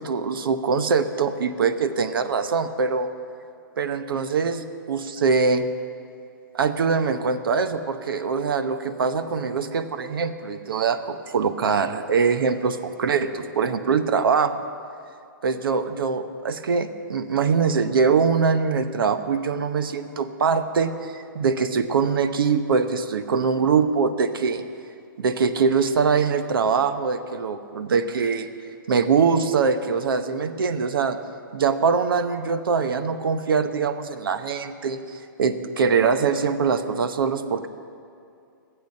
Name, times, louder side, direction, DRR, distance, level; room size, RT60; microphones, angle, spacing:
voice 1, 0.0-3.1 3.8-5.6 6.5-14.6 15.4-24.6 25.2-28.5 28.9-31.2 31.5-37.7, right 5 dB, 75° right, 10 dB, 1.0 m, -23 dB
25.5 x 9.0 x 5.4 m, 2.4 s
hypercardioid pair, 170°, 12 cm